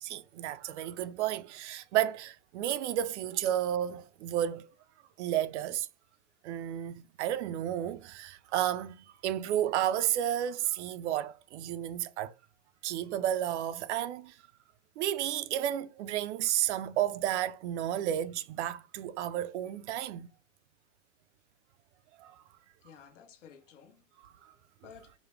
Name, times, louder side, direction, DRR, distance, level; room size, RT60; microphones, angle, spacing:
voice 1, 0.0-4.7 5.2-5.9 6.4-12.3 12.8-14.4 15.0-20.3 22.2-22.4, right 11 dB, 65° right, 0.5 m, -32 dB
voice 2, 22.8-24.0 24.3-25.1, left 7 dB, 70° left, 1.1 m, -54 dB
5.0 x 2.2 x 3.1 m
supercardioid pair, 140°, 38 cm